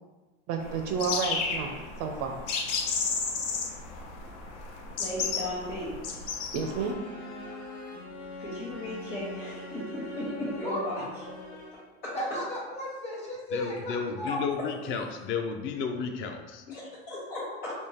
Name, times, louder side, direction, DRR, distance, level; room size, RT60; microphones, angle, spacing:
voice 1, 0.5-2.5 6.5-7.0, right 5 dB, 40° right, 0.4 m, -31 dB
sound 1, 0.6-6.9, left 5 dB, 65° left, 0.7 m, -33 dB
voice 2, 5.0-6.0 8.4-11.0 12.0-12.1 16.7-17.7, left 1 dB, 85° left, 1.3 m, -36 dB
sound 2, 6.6-12.0, left 1 dB, 50° left, 1.0 m, -42 dB
voice 3, 12.1-14.4, equal, 15° left, 1.1 m, -35 dB
voice 4, 13.5-16.8, left 5 dB, 35° left, 0.4 m, -33 dB
3.5 x 2.8 x 2.8 m
hypercardioid pair, 100°, 38 cm